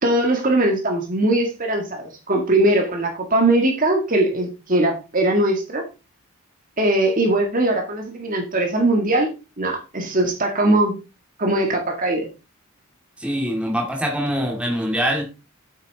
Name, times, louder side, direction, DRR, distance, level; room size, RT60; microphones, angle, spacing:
voice 1, 0.0-5.8 6.8-9.3 9.6-10.9 11.4-12.3, right 1 dB, 35° right, 2 dB, 2.0 m, -20 dB
voice 2, 13.2-15.2, equal, 5° right, 0 dB, 2.5 m, -23 dB
8.6 x 8.5 x 4.1 m, 0.29 s
head